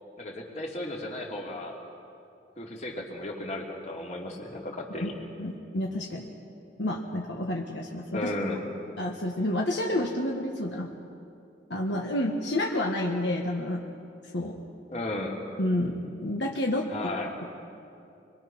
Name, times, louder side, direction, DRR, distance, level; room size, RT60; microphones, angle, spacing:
voice 1, 0.2-1.8 2.6-5.2 8.1-8.6 14.9-15.4 16.9-17.4, left 1 dB, 40° left, 0 dB, 2.9 m, -34 dB
voice 2, 5.4-6.3 6.8-8.3 9.0-10.9 11.7-13.8 14.3-14.5 15.6-17.1 17.4-17.5, left 1 dB, 70° left, 0 dB, 1.6 m, -29 dB
26.0 x 23.0 x 6.1 m, 2.6 s
head